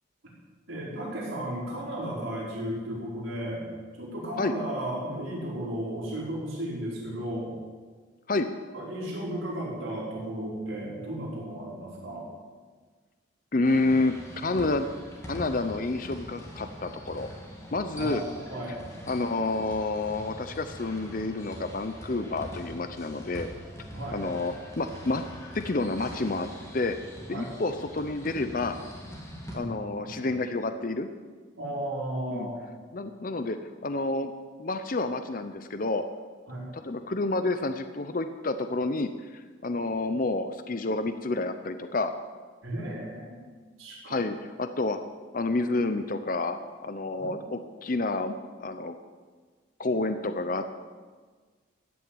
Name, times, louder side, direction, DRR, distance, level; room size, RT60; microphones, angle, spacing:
voice 1, 0.7-3.6 3.9-7.5 8.7-12.3 17.9-18.8 23.9-24.2 27.3-27.5 29.3-30.2 31.6-32.6 36.5-36.6 42.6-43.5 43.8-44.2 47.2-47.4, right 1 dB, 85° right, -6 dB, 5.0 m, -34 dB
voice 2, 13.5-14.9 15.3-17.3 17.7-18.2 19.1-23.5 24.1-25.2 25.5-26.5 26.7-27.0 27.3-28.8 29.5-31.1 32.3-32.5 32.9-33.6 33.8-34.3 34.6-36.0 36.8-42.1 44.1-45.0 45.3-48.3 48.6-49.0 49.8-50.6, left 2 dB, 45° left, 9 dB, 0.6 m, -29 dB
sound 1, 13.6-29.5, equal, 15° left, 2.3 m, -43 dB
14.0 x 7.0 x 8.7 m, 1.5 s
head